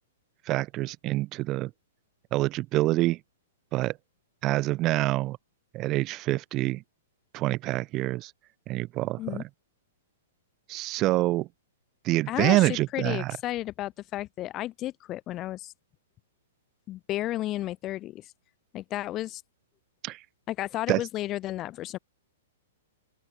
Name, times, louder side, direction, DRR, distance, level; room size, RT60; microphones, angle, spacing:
voice 1, 0.5-1.7 2.3-3.2 3.7-4.0 4.4-5.4 5.7-6.8 7.3-8.3 8.7-9.4 10.7-11.5 12.0-13.4 20.0-20.2 20.9-21.0, right 17 dB, 20° right, 1.1 m, -26 dB
voice 2, 12.3-15.7 16.9-18.3 18.7-19.4 20.5-22.0, left 15 dB, 20° left, 0.8 m, -33 dB
open air
hypercardioid pair, 170°, 0 cm